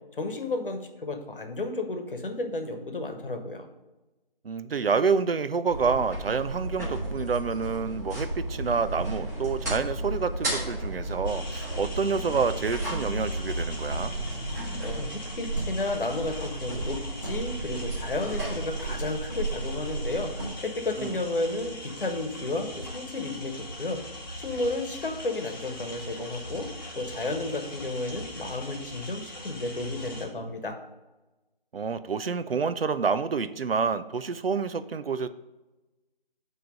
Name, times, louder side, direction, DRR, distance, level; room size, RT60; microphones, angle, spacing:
voice 1, 0.2-3.7 14.8-20.3 20.6-24.0 24.4-26.7 27.0-30.8, left 2 dB, 65° left, 5 dB, 1.2 m, -32 dB
voice 2, 4.4-14.1 21.0-21.2 31.7-35.3, right 5 dB, 70° right, 13 dB, 0.5 m, -28 dB
sound 1, 5.7-20.5, right 1 dB, 15° right, 1.4 m, -33 dB
sound 2, 11.2-30.3, left 1 dB, 20° left, 0.9 m, -41 dB
7.8 x 3.2 x 5.3 m, 1.1 s
figure-of-eight pair, 160°, 30 cm